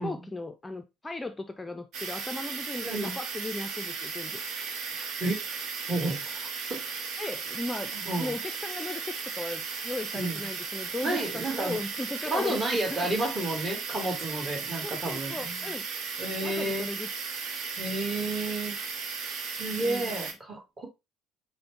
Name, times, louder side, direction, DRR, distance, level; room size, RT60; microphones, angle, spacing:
voice 1, 0.0-4.4 7.2-12.7 14.8-15.9 16.4-17.1 19.8-20.3, left 2 dB, 15° left, 0.4 m, -37 dB
sound 1, 1.9-20.3, right 5 dB, 50° right, 0.9 m, -36 dB
voice 2, 2.8-3.2 5.2-5.5 5.9-7.0 7.9-8.3 10.1-10.4 11.0-11.8 12.2-15.6 16.2-16.9 17.8-18.8 19.6-20.9, right 1 dB, 25° right, 1.6 m, -31 dB
5.0 x 2.1 x 4.5 m
figure-of-eight pair, 55°, 0 cm